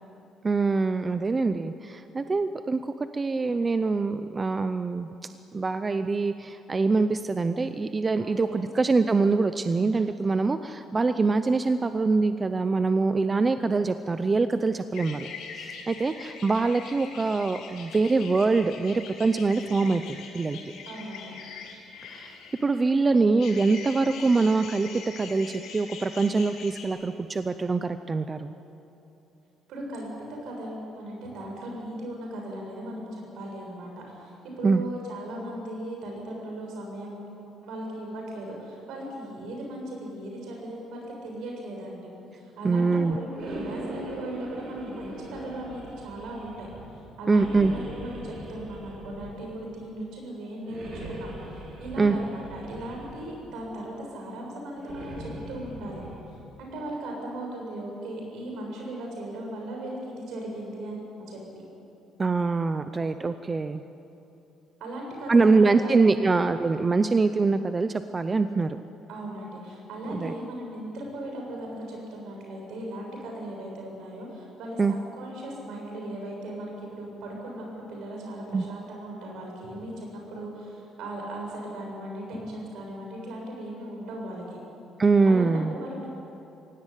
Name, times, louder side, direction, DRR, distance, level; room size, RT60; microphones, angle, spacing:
voice 1, 0.4-5.1 5.5-15.3 15.5-20.0 20.3-20.6 22.1-22.3 22.6-24.9 25.2-28.5 34.6-34.8 42.6-43.2 47.3-47.7 52.0-52.2 62.2-63.8 65.3-68.8 70.1-70.3 74.8-74.9 78.5-78.6 85.0-85.7, right 3 dB, 15° right, 10 dB, 0.5 m, -24 dB
voice 2, 8.2-8.7 20.9-21.4 29.7-37.3 37.6-46.7 47.2-56.0 56.6-61.4 64.8-66.3 69.1-84.6 85.3-86.1, right 1 dB, 65° right, 0 dB, 7.5 m, -37 dB
sound 1, 14.9-22.9 23.4-26.9, left 5 dB, 70° left, 6.1 m, -43 dB
sound 2, 43.3-46.9 47.3-49.6 50.6-53.4 54.7-56.2, right 1 dB, 45° right, 4.6 m, -40 dB
24.5 x 17.0 x 10.0 m, 2.9 s
cardioid pair, 180°, 0 cm